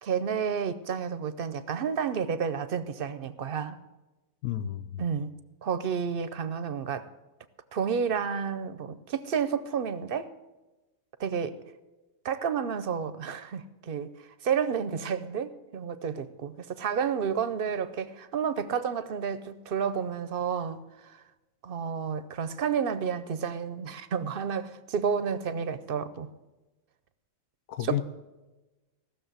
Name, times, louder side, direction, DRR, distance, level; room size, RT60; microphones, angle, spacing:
voice 1, 0.0-3.8 5.0-5.3 5.6-7.1 7.7-10.3 11.2-11.6 12.2-14.1 14.4-21.2 21.6-26.3 27.9-28.0, right 7 dB, 50° right, 13 dB, 0.7 m, -30 dB
voice 2, 4.4-5.0 27.7-28.0, left 11 dB, 80° left, 13 dB, 1.1 m, -31 dB
15.5 x 6.7 x 8.0 m, 1.1 s
omnidirectional pair, 1.4 m